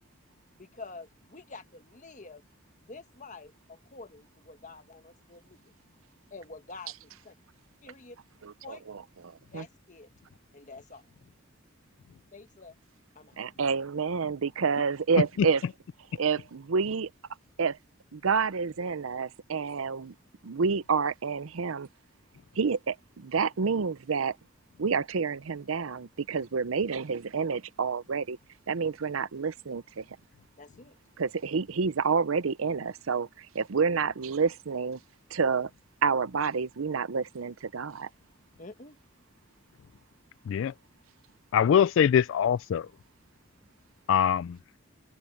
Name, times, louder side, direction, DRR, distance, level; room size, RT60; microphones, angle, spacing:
voice 1, 0.6-2.4 2.8-5.7 6.3-7.3 7.8-8.2 8.6-8.8 9.5-10.1 10.5-11.1 12.3-12.8 13.1-13.4 30.6-30.9 38.6-39.0, left 3 dB, 40° left, 1.5 m, -47 dB
voice 2, 8.4-9.6 13.4-15.6 16.2-17.1 17.6-17.8 18.1-20.1 20.4-21.9 22.6-24.4 24.8-28.4 28.7-30.0 31.2-35.0 35.3-35.7 36.0-38.1, right 5 dB, 85° right, 0.6 m, -29 dB
voice 3, 41.5-42.9 44.1-44.6, left 8 dB, 65° left, 0.3 m, -23 dB
open air
head